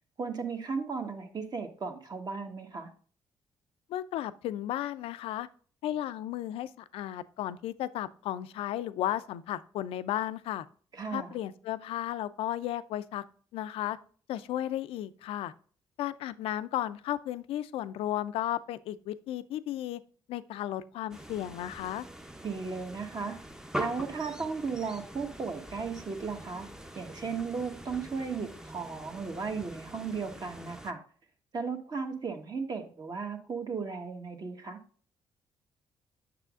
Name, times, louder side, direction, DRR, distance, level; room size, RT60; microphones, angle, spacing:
voice 1, 0.2-2.9 10.9-11.4 22.4-23.4 23.7-26.7 26.9-31.0 31.5-34.8, right 5 dB, 40° right, 4 dB, 1.2 m, -35 dB
voice 2, 3.9-5.5 5.8-10.7 11.1-13.2 13.5-14.0 14.3-15.5 16.0-20.0 20.3-22.0, left 12 dB, 75° left, 14 dB, 0.4 m, -34 dB
sound 1, 21.1-30.9, equal, 5° right, 0.6 m, -43 dB
7.5 x 6.1 x 2.4 m, 0.43 s
supercardioid pair, 55°, 10 cm